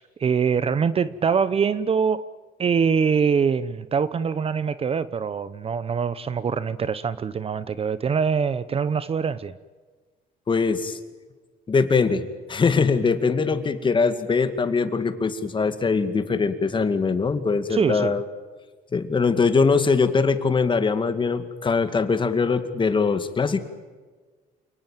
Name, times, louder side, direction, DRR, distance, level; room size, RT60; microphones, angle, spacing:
voice 1, 0.0-2.2 2.6-9.6 17.7-18.1, right 6 dB, 35° right, 15 dB, 0.9 m, -24 dB
voice 2, 10.5-11.0 11.7-18.2 18.9-23.6, left 4 dB, 30° left, 9 dB, 2.3 m, -22 dB
28.5 x 19.0 x 9.2 m, 1.4 s
cardioid pair, 110°, 17 cm